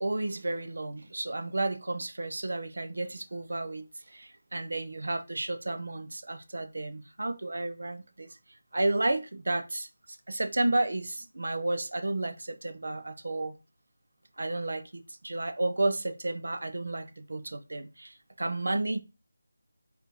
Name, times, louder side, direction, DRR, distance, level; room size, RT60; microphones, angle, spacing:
voice 1, 0.0-8.4 8.7-9.9 10.3-13.5 14.4-19.0, right 2 dB, 70° right, 0.6 m, -32 dB
4.9 x 3.3 x 2.8 m
figure-of-eight pair, 165°, 0 cm